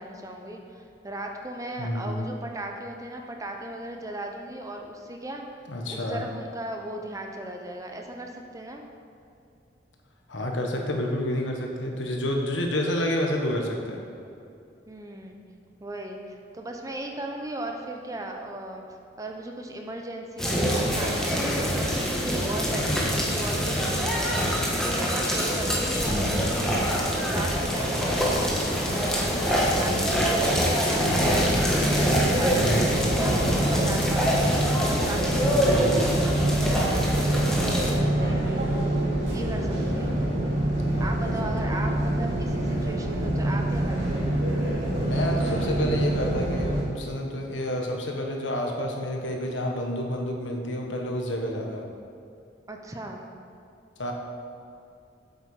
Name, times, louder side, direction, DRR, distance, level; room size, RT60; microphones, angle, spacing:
voice 1, 0.0-5.5 5.9-8.8 14.9-15.4 15.8-18.8 19.2-26.2 26.5-26.8 27.1-28.5 28.9-36.3 36.6-38.7 39.3-40.2 41.0-44.3 52.7-53.2, right 1 dB, 20° right, 2 dB, 0.7 m, -37 dB
voice 2, 1.8-2.2 5.7-6.3 10.3-14.0 29.9-30.5 32.5-33.0 35.4-36.1 37.8-38.3 40.9-41.1 41.6-41.8 45.0-51.8 54.0-54.1, left 1 dB, 85° left, 1 dB, 1.3 m, -29 dB
sound 1, 20.4-37.9, equal, 5° left, 1.2 m, -25 dB
sound 2, 26.0-40.3, equal, 65° right, 1.5 m, -42 dB
sound 3, 31.0-46.8, right 1 dB, 85° right, 2.5 m, -26 dB
8.1 x 8.1 x 4.9 m, 2.5 s
head